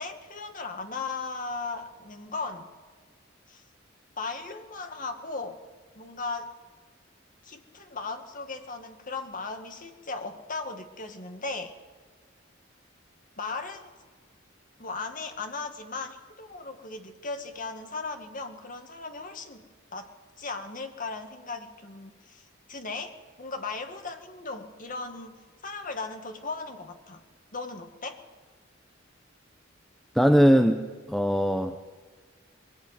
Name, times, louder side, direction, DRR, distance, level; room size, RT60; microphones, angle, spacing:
voice 1, 0.0-2.7 3.5-3.6 4.2-5.6 6.0-6.5 7.4-11.7 13.4-13.9 14.8-19.6 19.9-20.1 20.4-23.1 23.4-25.4 25.6-27.2 27.5-28.2, left 3 dB, 45° left, 6 dB, 2.3 m, -37 dB
voice 2, 30.1-31.8, equal, ahead, 6 dB, 0.9 m, -21 dB
22.0 x 17.5 x 9.4 m, 1.5 s
head